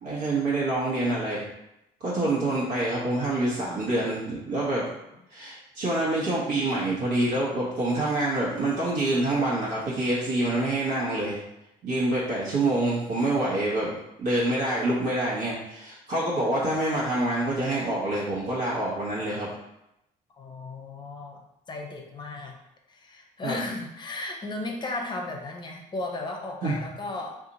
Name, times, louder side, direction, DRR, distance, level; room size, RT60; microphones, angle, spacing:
voice 1, 0.0-1.4 2.0-4.8 5.3-11.4 11.8-13.9 14.2-19.5 23.4-23.6 26.6-26.9, right 2 dB, 75° right, -7 dB, 1.1 m, -26 dB
voice 2, 20.3-22.6 22.9-27.5, left 2 dB, 25° left, 2 dB, 0.6 m, -35 dB
2.8 x 2.5 x 3.9 m, 0.86 s
cardioid pair, 110°, 17 cm